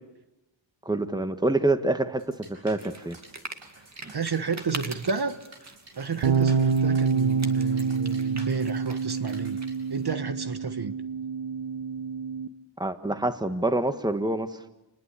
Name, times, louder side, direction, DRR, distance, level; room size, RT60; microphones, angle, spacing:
voice 1, 0.8-2.3 2.6-3.2 12.8-14.5, right 2 dB, 10° right, 9 dB, 1.5 m, -26 dB
sound 1, 2.2-9.7, right 2 dB, 70° right, 7.8 m, -50 dB
sound 2, 2.8-10.2, right 3 dB, 35° right, 2.1 m, -44 dB
voice 2, 4.1-9.6 9.9-10.9, right 5 dB, 55° right, 9 dB, 1.4 m, -31 dB
sound 3, 6.2-12.5, right 5 dB, 90° right, 1.2 m, -27 dB
29.0 x 20.5 x 8.4 m, 0.99 s
wide cardioid pair, 100°, 47 cm